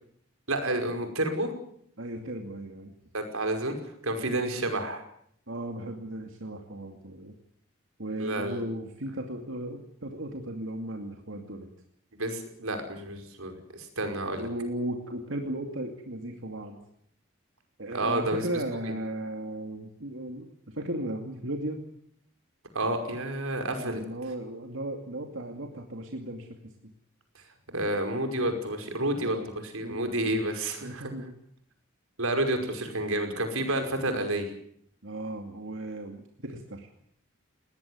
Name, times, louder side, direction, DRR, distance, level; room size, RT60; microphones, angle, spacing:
voice 1, 0.5-1.5 3.1-3.8 4.0-5.0 8.2-8.6 12.1-14.5 17.9-18.4 18.8-18.9 22.7-24.0 27.7-29.4 29.6-31.1 32.2-34.5, right 1 dB, 90° right, 5 dB, 5.3 m, -30 dB
voice 2, 2.0-2.9 5.5-7.3 8.0-11.7 14.4-16.8 17.8-21.8 23.8-26.5 26.8-26.9 29.2-29.5 29.8-30.3 30.8-31.4 35.0-36.9, right 1 dB, 70° right, 3 dB, 2.5 m, -36 dB
20.5 x 19.5 x 9.6 m, 0.69 s
head